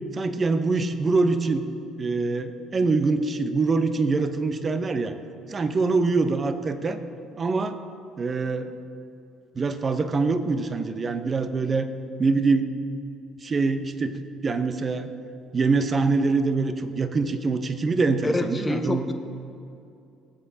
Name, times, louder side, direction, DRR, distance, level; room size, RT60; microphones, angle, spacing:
voice 1, 0.1-1.7 2.0-5.2 5.5-7.0 7.4-7.8 8.2-8.7 9.5-11.9 12.2-12.8 13.4-15.1 15.5-19.1, right 3 dB, 35° right, 10 dB, 0.8 m, -24 dB
voice 2, 18.2-19.1, left 2 dB, 20° left, 6 dB, 0.9 m, -26 dB
18.5 x 7.9 x 2.8 m, 2.6 s
hypercardioid pair, 55°, 0 cm